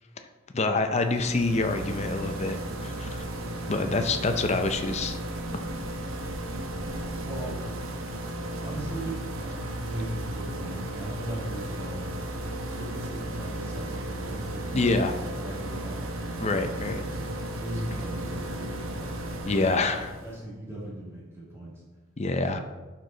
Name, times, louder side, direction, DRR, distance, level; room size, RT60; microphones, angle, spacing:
voice 1, 0.5-3.3 3.7-5.2 14.7-15.2 16.4-17.0 19.4-20.2 22.2-22.6, left 3 dB, 30° left, 7 dB, 0.6 m, -26 dB
sound 1, 1.0-20.4, right 1 dB, 85° right, 0.9 m, -35 dB
voice 2, 6.7-7.7 8.6-12.2 12.7-15.0 15.3-16.1 16.7-19.7 20.2-21.9 22.3-22.6, right 1 dB, 10° right, -7 dB, 2.4 m, -39 dB
11.0 x 4.5 x 3.9 m, 1.3 s
head